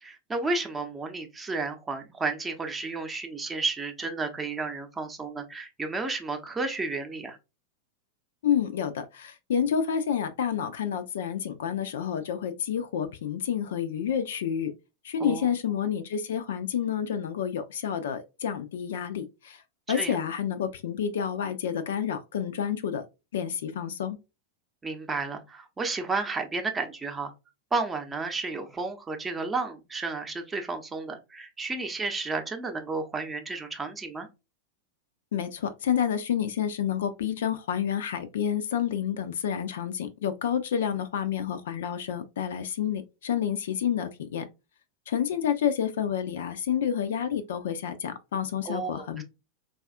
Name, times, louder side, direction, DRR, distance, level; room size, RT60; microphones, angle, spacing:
voice 1, 0.0-7.4 15.2-15.5 19.9-20.2 24.8-27.3 27.7-34.3 48.6-49.2, right 3 dB, 15° right, 0.7 m, -32 dB
voice 2, 8.4-14.7 15.0-19.6 19.9-23.0 23.3-24.2 35.3-44.5 45.1-49.2, left 8 dB, 60° left, 0.4 m, -29 dB
4.0 x 2.4 x 2.3 m
figure-of-eight pair, 90°, 0 cm